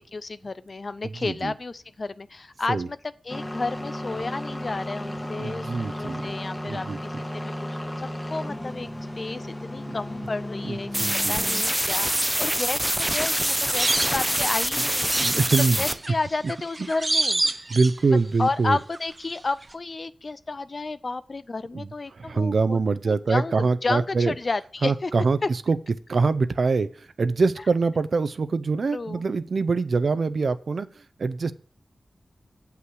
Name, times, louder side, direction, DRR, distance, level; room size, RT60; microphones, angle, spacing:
voice 1, 0.0-3.0 3.2-8.9 9.2-10.9 11.3-15.1 15.8-17.4 18.4-22.8 23.1-25.1 25.4-25.5 28.9-29.2, left 3 dB, 50° left, 14 dB, 0.4 m, -31 dB
voice 2, 1.0-1.5 2.7-2.9 5.4-6.2 6.6-7.0 9.9-10.0 10.6-11.4 15.1-15.9 17.7-18.8 21.7-24.3 24.8-25.8 26.1-31.5, right 4 dB, 70° right, 13 dB, 0.6 m, -24 dB
sound 1, 3.3-11.6, left 1 dB, 20° left, 1.4 m, -34 dB
sound 2, 10.9-15.9, equal, 10° right, 0.7 m, -25 dB
sound 3, 12.9-14.6 15.1-18.4 18.7-19.4 19.6-19.7, right 2 dB, 35° right, 0.7 m, -29 dB
7.7 x 5.8 x 6.3 m, 0.40 s
cardioid pair, 60°, 0 cm